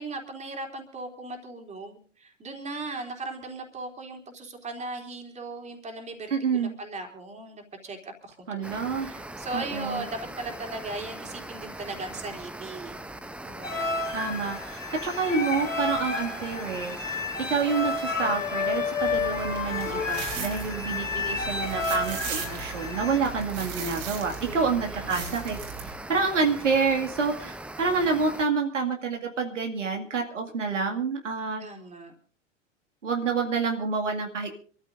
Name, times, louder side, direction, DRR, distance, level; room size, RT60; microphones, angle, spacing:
voice 1, 0.0-13.0 13.4-14.1 24.4-25.4 31.6-32.1, right 2 dB, 20° right, 3 dB, 3.5 m, -38 dB
voice 2, 6.3-6.8 8.5-9.1 9.5-10.0 14.1-17.2 17.5-25.6 26.1-31.6 33.0-34.5, right 5 dB, 75° right, 2 dB, 2.3 m, -28 dB
sound 1, 8.6-28.5, right 1 dB, 5° right, 0.7 m, -41 dB
sound 2, 13.6-23.2, left 4 dB, 90° left, 2.9 m, -31 dB
sound 3, 19.0-25.9, right 6 dB, 60° right, 4.1 m, -38 dB
27.0 x 14.0 x 2.6 m, 0.44 s
figure-of-eight pair, 90°, 37 cm